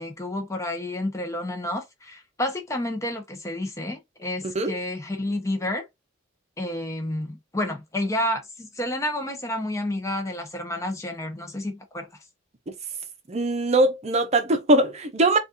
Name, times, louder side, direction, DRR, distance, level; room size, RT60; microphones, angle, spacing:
voice 1, 0.0-5.8 6.6-12.1, left 1 dB, 15° left, 0.8 m, -30 dB
voice 2, 13.3-15.4, right 1 dB, 35° right, 0.7 m, -21 dB
4.1 x 2.4 x 2.5 m
head